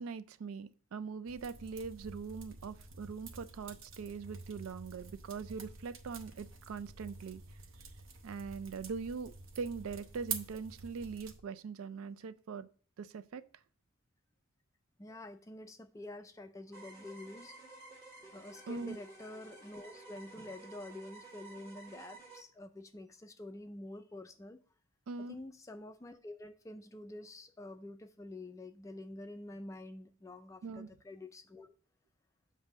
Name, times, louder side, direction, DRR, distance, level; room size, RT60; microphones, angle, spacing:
voice 1, 0.0-7.4 8.2-12.7 13.0-13.4 18.7-19.0 25.1-25.4 30.6-30.9, right 5 dB, 85° right, 0.4 m, -42 dB
sound 1, 1.3-11.4, right 5 dB, 70° right, 0.8 m, -48 dB
voice 2, 15.0-17.5 18.3-24.6 25.3-31.7, left 1 dB, 15° left, 0.3 m, -48 dB
sound 2, 16.7-22.4, right 3 dB, 25° right, 1.7 m, -53 dB
7.4 x 2.7 x 5.9 m
head